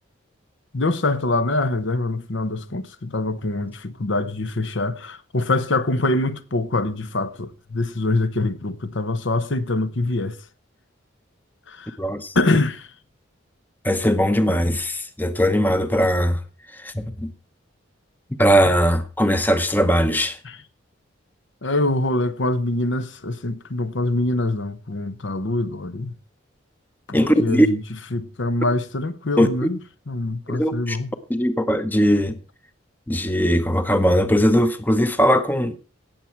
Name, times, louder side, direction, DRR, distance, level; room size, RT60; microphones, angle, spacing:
voice 1, 0.7-10.4 11.7-12.0 12.3-12.9 20.4-20.6 21.6-26.1 27.1-27.8 28.1-29.8 30.1-31.1, left 2 dB, 70° left, 1.0 m, -24 dB
voice 2, 12.0-12.3 13.8-16.4 16.8-17.3 18.4-20.4 27.1-27.7 29.4-29.7 30.5-31.0 31.3-32.4 33.1-35.8, equal, 10° left, 0.7 m, -19 dB
18.0 x 7.3 x 4.5 m
head